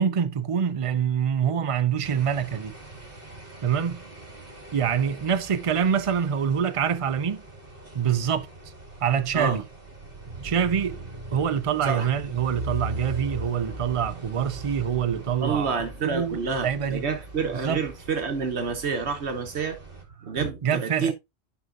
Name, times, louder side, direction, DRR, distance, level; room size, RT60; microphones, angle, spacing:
voice 1, 0.0-2.8 3.6-4.0 4.7-7.4 7.9-8.5 9.0-9.6 10.4-11.0 11.3-17.1 17.6-17.8 20.6-21.1, right 8 dB, 40° right, 0.5 m, -25 dB
sound 1, 2.0-20.0, right 2 dB, 55° right, 2.3 m, -40 dB
voice 2, 15.4-19.8 20.2-21.1, right 5 dB, 75° right, 1.3 m, -28 dB
11.5 x 5.0 x 2.5 m
omnidirectional pair, 1.1 m